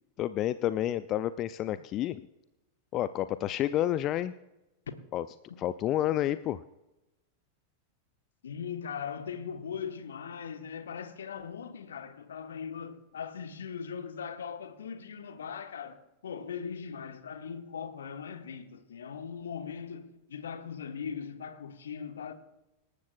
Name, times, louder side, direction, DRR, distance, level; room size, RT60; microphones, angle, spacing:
voice 1, 0.2-2.2 2.9-4.3 5.1-5.2 5.6-6.6, left 12 dB, 35° left, 0.4 m, -29 dB
voice 2, 8.4-22.3, left 7 dB, 65° left, 1.2 m, -40 dB
26.0 x 13.0 x 2.4 m
figure-of-eight pair, 90°, 0 cm